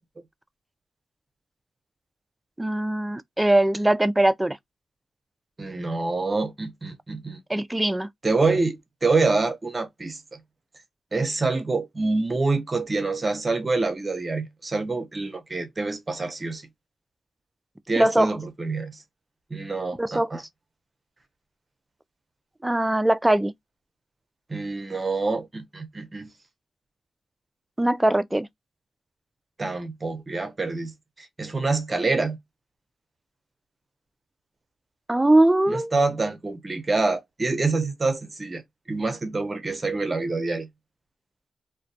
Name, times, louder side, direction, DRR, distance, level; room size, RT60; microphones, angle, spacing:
voice 1, 2.6-4.6 7.5-8.1 18.0-18.3 20.0-20.3 22.6-23.5 27.8-28.5 35.1-35.9, right 1 dB, 15° right, 0.3 m, -21 dB
voice 2, 5.6-7.4 8.2-10.4 11.1-16.6 17.9-19.0 19.5-20.4 24.5-26.3 29.6-32.4 35.7-38.6 38.9-40.7, right 3 dB, 35° right, 0.7 m, -26 dB
2.2 x 2.1 x 2.6 m
cardioid pair, 70°, 0 cm